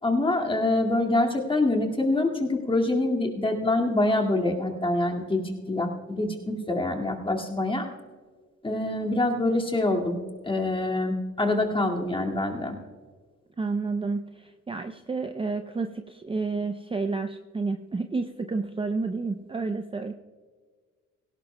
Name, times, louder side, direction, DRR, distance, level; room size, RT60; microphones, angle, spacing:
voice 1, 0.0-7.9 8.6-10.2 10.4-12.8, left 2 dB, 15° left, 0 dB, 2.1 m, -25 dB
voice 2, 13.6-20.1, right 3 dB, 20° right, 7 dB, 0.6 m, -30 dB
17.5 x 17.0 x 2.2 m, 1.5 s
cardioid pair, 90°, 30 cm